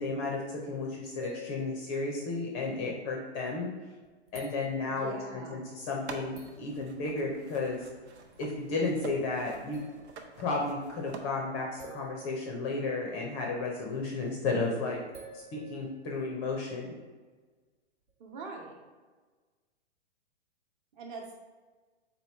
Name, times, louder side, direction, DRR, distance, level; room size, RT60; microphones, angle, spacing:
voice 1, 0.0-3.7 4.3-7.8 8.4-9.8 10.4-15.0 15.3-16.9, left 3 dB, 20° left, 0 dB, 0.4 m, -33 dB
sound 1, 1.2-2.8 3.4-3.5 4.0-5.1 6.0-6.1 6.4-6.7 9.1-9.2 9.7-10.5 11.8-13.4 15.1-16.8 18.1-18.2, right 1 dB, 90° right, 1.2 m, -51 dB
voice 2, 4.9-5.7 18.2-18.8 20.9-21.4, right 3 dB, 45° right, 1 dB, 0.9 m, -43 dB
sound 2, 5.8-11.2, right 4 dB, 70° right, 0.7 m, -47 dB
3.9 x 2.9 x 4.5 m, 1.4 s
hypercardioid pair, 125°, 34 cm